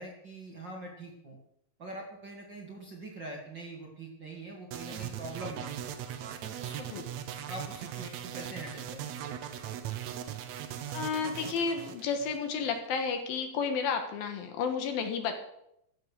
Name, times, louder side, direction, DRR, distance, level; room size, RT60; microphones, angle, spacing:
voice 1, 0.0-1.4 1.8-5.8 6.4-6.9 7.5-9.3, right 1 dB, 40° right, 0 dB, 2.0 m, -43 dB
sound 1, 4.7-12.8, right 10 dB, 85° right, 1.5 m, -39 dB
voice 2, 10.9-15.4, left 5 dB, 70° left, 6 dB, 3.1 m, -31 dB
14.5 x 8.6 x 6.5 m, 0.78 s
omnidirectional pair, 4.4 m